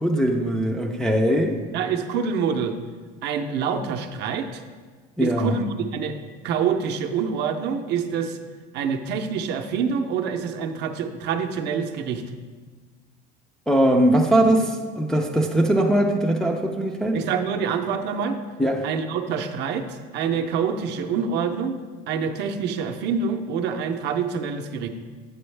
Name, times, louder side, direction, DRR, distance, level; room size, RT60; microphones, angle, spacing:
voice 1, 0.0-1.6 5.2-5.6 13.7-17.2 18.6-18.9, right 1 dB, 5° left, 0 dB, 0.3 m, -21 dB
voice 2, 1.7-2.8 3.2-4.6 5.2-6.2 6.4-8.4 8.7-12.2 17.1-18.4 18.8-21.8 22.1-24.9, right 6 dB, 55° right, 5 dB, 0.6 m, -26 dB
7.8 x 6.1 x 3.2 m, 1.5 s
cardioid pair, 155°, 21 cm